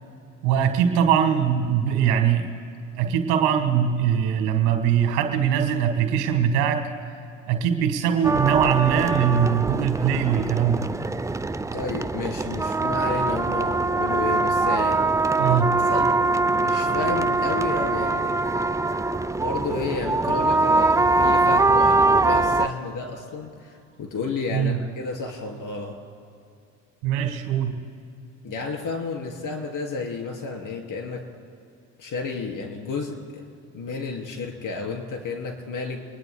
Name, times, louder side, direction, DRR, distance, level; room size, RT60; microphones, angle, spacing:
voice 1, 0.4-2.5 3.0-6.8 7.5-10.9 15.4-15.8 24.5-24.8 27.0-27.8, right 8 dB, 75° right, 5 dB, 1.8 m, -21 dB
sound 1, 8.2-22.7, right 3 dB, 10° right, 0.4 m, -22 dB
voice 2, 11.7-15.0 15.5-15.6 15.8-16.2 16.5-18.4 19.4-26.0 28.4-31.2 32.0-33.4 33.7-36.0, left 4 dB, 50° left, 1 dB, 3.5 m, -31 dB
25.5 x 21.0 x 2.2 m, 2.5 s
hypercardioid pair, 60°, 39 cm